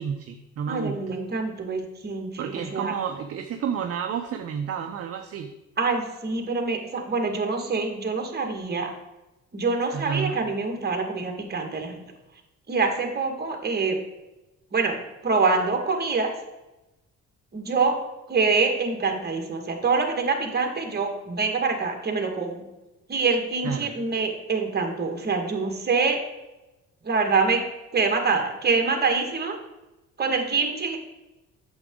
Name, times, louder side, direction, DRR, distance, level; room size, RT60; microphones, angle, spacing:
voice 1, 0.0-1.2 2.4-5.5 9.9-10.4 23.6-23.9, right 7 dB, 50° right, 6 dB, 0.7 m, -31 dB
voice 2, 0.7-3.0 5.8-8.9 9.5-12.0 12.7-14.0 14.7-15.0 15.2-16.3 17.5-18.0 18.3-22.6 23.1-26.2 27.0-27.6 27.9-29.6 30.2-31.0, right 4 dB, 35° right, 3 dB, 1.8 m, -25 dB
8.7 x 7.1 x 3.8 m, 1.0 s
cardioid pair, 90°, 30 cm